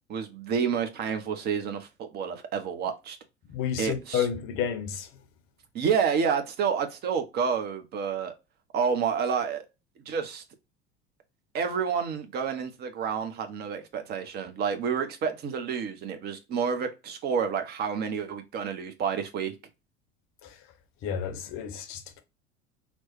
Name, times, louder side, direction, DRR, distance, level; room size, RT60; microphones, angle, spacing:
voice 1, 0.1-3.2 3.8-4.3 5.7-8.3 8.7-9.6 10.1-10.4 11.5-19.5, right 6 dB, 30° right, 0.5 m, -29 dB
voice 2, 3.5-5.1 20.4-20.6 21.0-22.2, left 8 dB, 40° left, 0.6 m, -31 dB
2.9 x 2.0 x 2.9 m
figure-of-eight pair, 70°, 34 cm